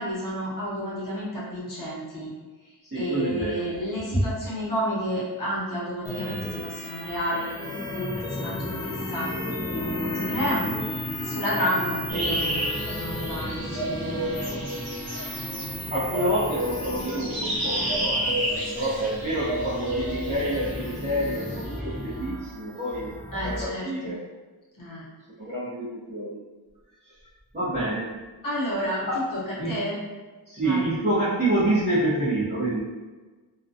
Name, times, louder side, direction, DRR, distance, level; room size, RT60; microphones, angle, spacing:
voice 1, 0.0-2.3 2.9-10.7 11.2-12.6 12.9-14.6 23.3-24.1 24.8-25.0 28.4-29.4 29.7-30.0 30.6-30.8, equal, 55° left, -7 dB, 0.9 m, -31 dB
voice 2, 2.9-3.7 4.1-4.2 15.9-23.1 23.4-24.2 25.4-26.4 27.0-27.2 27.5-28.1 29.1-29.2 29.6-29.8 30.5-32.8, right 1 dB, 25° right, -13 dB, 0.7 m, -27 dB
sound 1, 6.0-23.6, left 1 dB, 10° left, 0.4 m, -34 dB
sound 2, 12.1-15.7 16.1-21.8, right 1 dB, 70° right, 0.8 m, -30 dB
2.4 x 2.2 x 2.5 m, 1.3 s
wide cardioid pair, 110°, 38 cm